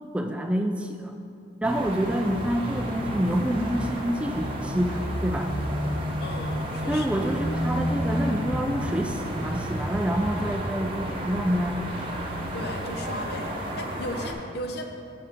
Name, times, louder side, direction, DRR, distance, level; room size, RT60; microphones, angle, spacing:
voice 1, 0.1-1.1 1.6-5.5 6.9-11.9, equal, 5° right, 5 dB, 0.3 m, -27 dB
sound 1, 1.6-14.3, equal, 30° right, 0.9 m, -31 dB
voice 2, 6.2-7.1 12.5-14.9, left 1 dB, 55° left, 4 dB, 0.7 m, -35 dB
7.8 x 6.3 x 5.8 m, 2.5 s
head